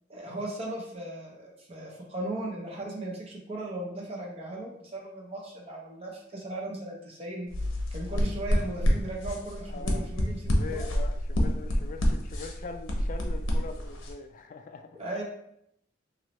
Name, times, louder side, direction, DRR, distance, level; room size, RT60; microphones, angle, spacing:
voice 1, 0.1-7.5 7.9-10.9 15.0-15.2, right 1 dB, 30° right, -2 dB, 0.8 m, -37 dB
sound 1, 7.5-14.1, equal, 75° left, 0.7 m, -28 dB
voice 2, 9.7-10.1 10.5-15.0, left 4 dB, 40° left, 6 dB, 0.3 m, -42 dB
3.1 x 2.7 x 3.0 m, 0.75 s
head